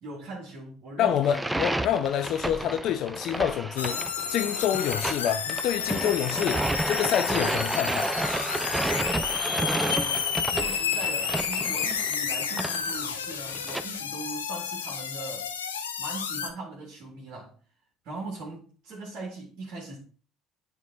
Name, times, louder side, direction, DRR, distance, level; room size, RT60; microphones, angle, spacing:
voice 1, 0.0-1.4 9.6-15.5 16.0-17.6 18.0-20.0, right 2 dB, 55° right, 2.0 m, -40 dB
voice 2, 1.0-4.0 4.3-8.1, left 10 dB, 55° left, 0.4 m, -27 dB
sound 1, 1.2-13.8, right 1 dB, 10° right, 0.5 m, -31 dB
sound 2, 3.8-16.5, left 7 dB, 85° left, 0.8 m, -31 dB
9.2 x 3.7 x 3.9 m
hypercardioid pair, 60°, 0 cm